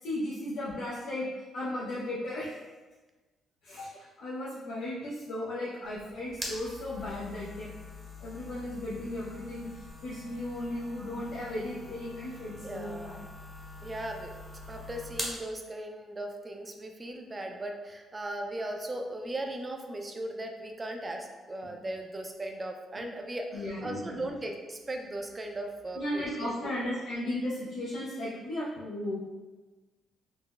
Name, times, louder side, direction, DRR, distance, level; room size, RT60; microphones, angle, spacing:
voice 1, 0.0-2.6 3.6-7.7 8.2-13.2 21.6-21.8 23.0-23.1 23.5-24.3 26.0-29.3, left 1 dB, 80° left, -7 dB, 0.5 m, -36 dB
sound 1, 5.8-15.4, left 2 dB, 10° left, 0.7 m, -44 dB
voice 2, 12.6-13.2 13.8-14.3 14.7-26.5, right 1 dB, 25° right, 3 dB, 0.4 m, -38 dB
3.8 x 2.0 x 2.3 m, 1.3 s
cardioid pair, 90°, 0 cm